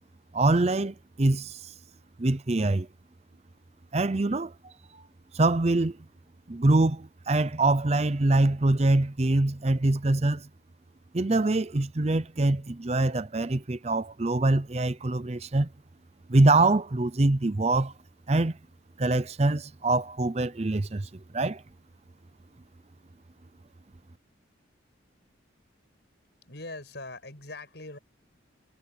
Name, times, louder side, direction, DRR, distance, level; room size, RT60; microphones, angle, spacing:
voice 1, 0.3-1.7 2.2-2.9 3.9-5.0 5.3-6.0 6.5-10.5 11.1-15.7 16.3-17.9 18.3-18.6 19.0-21.6, right 2 dB, 35° right, 0.6 m, -24 dB
voice 2, 26.5-28.0, left 2 dB, 60° left, 7.8 m, -41 dB
head